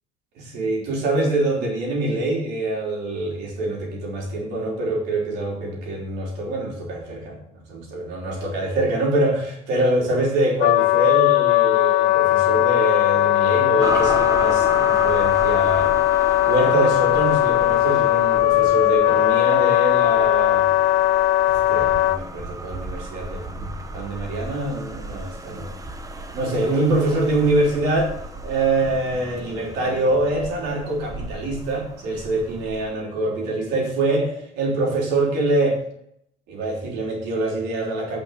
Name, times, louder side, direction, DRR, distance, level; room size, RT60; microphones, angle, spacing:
voice 1, 0.4-15.9 16.2-20.7 21.4-25.7 26.3-28.1 28.4-35.8 36.5-38.2, right 2 dB, 90° right, 0 dB, 3.5 m, -24 dB
Wind instrument woodwind instrument, 10.6-22.2, left 15 dB, 80° left, 0.5 m, -18 dB
sound 1, 13.8-32.9, right 2 dB, 20° right, 1.1 m, -34 dB
9.0 x 5.8 x 6.7 m, 0.71 s
cardioid pair, 110°, 17 cm